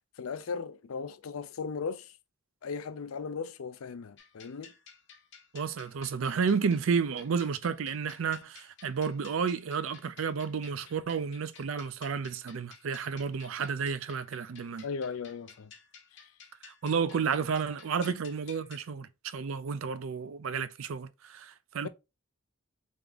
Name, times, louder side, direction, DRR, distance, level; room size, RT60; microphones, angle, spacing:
voice 1, 0.2-2.2 2.6-4.7 14.8-15.7 16.1-16.2 18.1-18.2, left 5 dB, 85° left, 0.5 m, -37 dB
sound 1, 4.2-18.9, left 6 dB, 55° left, 0.9 m, -54 dB
voice 2, 5.5-14.8 16.6-21.9, right 6 dB, 70° right, 0.4 m, -31 dB
3.6 x 3.4 x 3.6 m
head